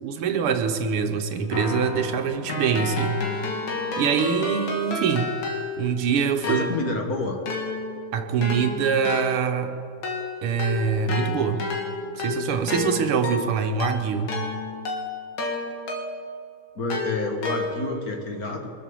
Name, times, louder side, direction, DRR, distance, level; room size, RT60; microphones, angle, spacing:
voice 1, 0.0-3.7 4.0-5.3 5.8-6.7 8.1-9.7 10.4-11.7 12.2-14.4, right 6 dB, 85° right, 7 dB, 1.9 m, -24 dB
Keyboard (musical), 1.5-6.0 6.4-16.4 16.9-18.1, left 3 dB, 65° left, 2.4 m, -31 dB
voice 2, 6.5-7.4 16.7-18.7, left 2 dB, 45° left, 3 dB, 1.8 m, -29 dB
23.0 x 7.6 x 7.0 m, 2.4 s
omnidirectional pair, 2.4 m